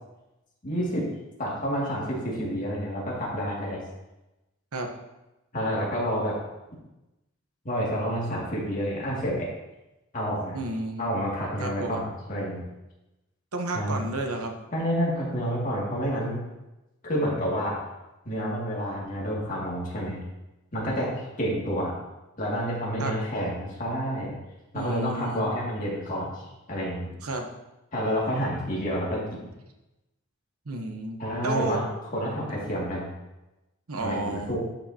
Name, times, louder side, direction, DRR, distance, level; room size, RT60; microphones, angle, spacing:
voice 1, 0.6-1.1 1.4-3.8 5.5-6.4 7.6-9.5 10.1-10.6 11.0-12.6 13.7-14.1 14.7-16.4 17.0-17.8 18.2-20.2 20.7-21.9 22.4-24.3 24.7-27.1 27.9-29.5 31.2-33.1 34.0-34.6, equal, 35° left, -5 dB, 2.3 m, -29 dB
voice 2, 10.5-11.1 11.6-12.0 13.5-14.6 23.0-23.1 24.7-25.5 27.2-27.5 30.7-31.8 33.9-34.6, right 2 dB, 80° right, 3 dB, 1.0 m, -31 dB
11.5 x 5.5 x 2.9 m, 0.98 s
head